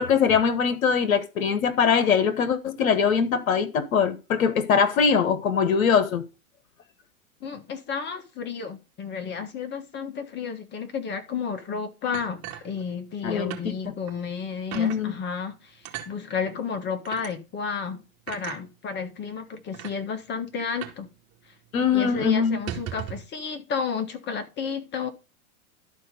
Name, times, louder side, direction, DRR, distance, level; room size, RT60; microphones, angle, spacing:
voice 1, 0.0-6.2 13.2-13.7 14.7-15.1 21.7-22.6, left 6 dB, 75° left, 1.5 m, -22 dB
voice 2, 7.4-15.8 16.1-21.1 21.9-25.1, left 6 dB, 25° left, 1.5 m, -32 dB
sound 1, 12.1-13.2 13.5-13.7 14.1-14.2 14.7-15.0 15.8-16.1 17.0-17.3 18.3-18.6 19.4-19.5 19.7-20.0 20.8-21.1 21.3-21.4 21.8-22.0 22.5-23.3, right 11 dB, 35° right, 2.2 m, -37 dB
12.0 x 4.4 x 5.3 m
hypercardioid pair, 120°, 43 cm